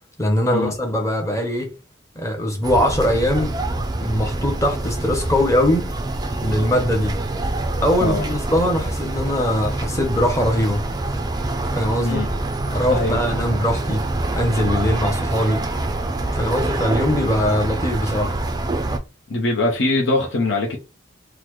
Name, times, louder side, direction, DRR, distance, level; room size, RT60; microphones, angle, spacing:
voice 1, 0.2-1.7 2.2-3.6 4.0-5.9 6.4-7.1 7.8-10.8 11.8-12.2 12.7-15.7 16.3-18.4, equal, 15° left, 0.8 m, -21 dB
sound 1, 2.6-19.0, right 2 dB, 20° right, 0.3 m, -25 dB
voice 2, 12.9-13.2 19.3-20.8, left 2 dB, 70° left, 0.8 m, -22 dB
3.9 x 2.1 x 3.0 m
head